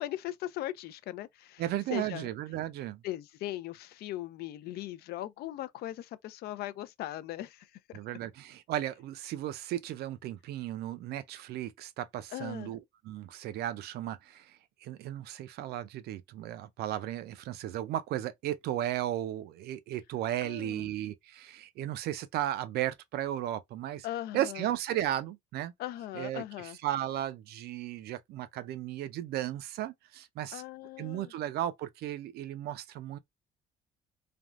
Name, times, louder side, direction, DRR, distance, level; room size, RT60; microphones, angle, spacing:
voice 1, 0.0-1.6 1.9-2.3 3.0-8.0 12.3-12.7 20.4-20.9 24.0-24.7 25.8-26.8 30.5-31.3, left 14 dB, 70° left, 0.4 m, -39 dB
voice 2, 1.6-3.0 7.9-24.1 24.3-25.7 26.1-30.6 31.0-33.2, right 12 dB, 70° right, 0.5 m, -35 dB
3.4 x 2.2 x 2.4 m
cardioid pair, 110°, 17 cm